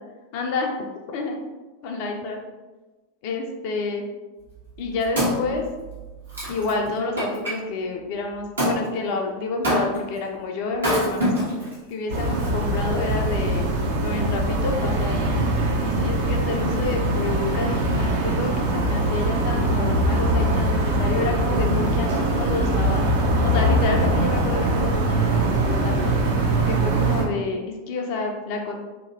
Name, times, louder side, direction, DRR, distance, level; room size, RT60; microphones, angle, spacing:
voice 1, 0.3-0.9 1.1-1.4 1.8-2.4 3.2-4.0 4.8-5.6 6.5-13.7 14.0-15.4 15.8-23.0 23.4-26.1 26.7-28.8, left 3 dB, 50° left, 2 dB, 0.4 m, -29 dB
Wood, 4.6-7.6 8.6-8.8 9.6-10.2 10.7-11.7 12.4-12.5, equal, 70° right, 1.2 m, -25 dB
sound 1, 12.1-27.2, right 1 dB, 55° right, 0.6 m, -22 dB
2.7 x 2.7 x 2.6 m, 1.2 s
figure-of-eight pair, 85°, 0 cm